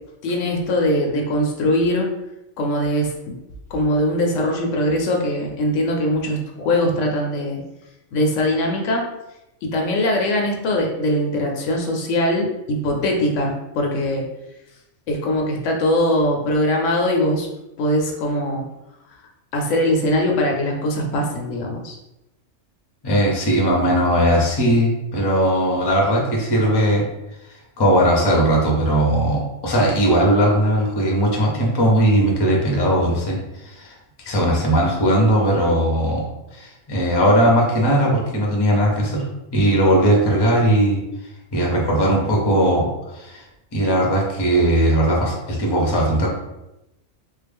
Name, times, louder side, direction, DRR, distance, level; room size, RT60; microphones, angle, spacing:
voice 1, 0.2-2.1 2.6-3.3 3.7-7.6 8.1-9.1 9.6-14.3 15.1-17.5 17.8-18.6 19.5-22.0, left 1 dB, 75° left, 1 dB, 1.0 m, -21 dB
voice 2, 23.0-27.0 27.8-33.4 33.6-34.0 34.2-36.2 36.5-39.2 39.5-41.0 41.5-43.4 43.7-46.3, equal, 25° left, -2 dB, 0.6 m, -18 dB
3.7 x 2.0 x 3.4 m, 0.93 s
omnidirectional pair, 1.3 m